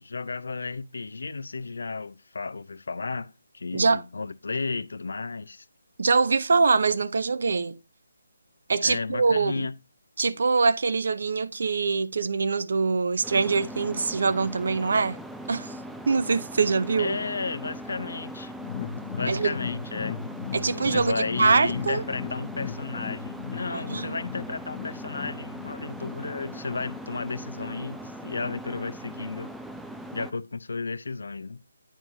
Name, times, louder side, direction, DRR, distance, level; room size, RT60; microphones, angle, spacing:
voice 1, 0.0-5.7 8.8-9.7 17.0-18.5 19.1-20.2 20.7-29.5 30.1-31.6, left 4 dB, 75° left, 0.4 m, -33 dB
voice 2, 6.0-7.8 8.7-9.7 10.2-15.2 15.5-15.7 16.1-17.2 19.3-19.5 20.5-22.0 23.9-24.2, right 4 dB, 60° right, 0.6 m, -24 dB
sound 1, 13.2-30.3, equal, ahead, 0.4 m, -40 dB
sound 2, 18.6-27.9 28.2-28.3 28.7-28.8, left 7 dB, 35° left, 0.9 m, -37 dB
8.8 x 4.7 x 2.6 m
figure-of-eight pair, 160°, 0 cm